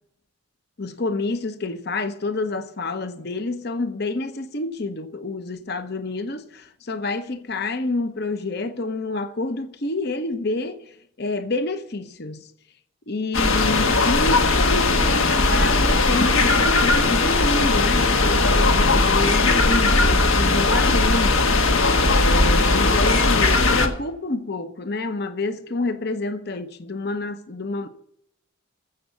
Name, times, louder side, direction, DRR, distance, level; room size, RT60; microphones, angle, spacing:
voice 1, 0.8-12.5 13.1-27.9, left 2 dB, 50° left, 0.9 m, -28 dB
sound 1, 13.3-23.9, left 3 dB, 75° left, 1.4 m, -18 dB
14.5 x 7.2 x 6.8 m
head